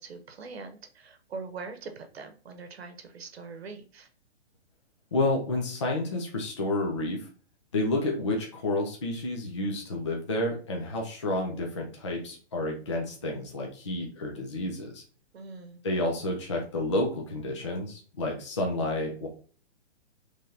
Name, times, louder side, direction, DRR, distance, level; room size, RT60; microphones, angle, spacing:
voice 1, 0.0-4.1 15.3-15.8, right 4 dB, 65° right, 7 dB, 0.9 m, -42 dB
voice 2, 5.1-7.3 7.7-15.0 15.8-19.3, left 2 dB, 25° left, 0 dB, 0.5 m, -30 dB
5.6 x 3.3 x 2.8 m, 0.40 s
hypercardioid pair, 180°, 34 cm